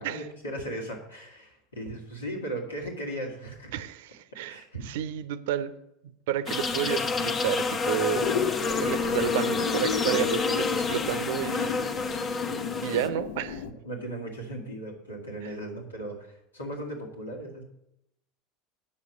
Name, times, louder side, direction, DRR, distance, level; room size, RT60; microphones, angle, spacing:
voice 1, 0.0-3.7 4.5-4.8 12.5-13.1 13.6-17.6, right 1 dB, 80° left, -1 dB, 2.0 m, -37 dB
voice 2, 3.7-5.7 6.0-8.2 8.7-11.9 12.8-13.6 15.4-15.5, right 11 dB, 60° right, 14 dB, 0.6 m, -31 dB
sound 1, 6.5-13.1, left 4 dB, 30° left, 0.9 m, -29 dB
sound 2, 8.1-13.7, left 7 dB, 60° left, 0.6 m, -33 dB
8.6 x 6.4 x 7.1 m, 0.82 s
figure-of-eight pair, 75°, 0 cm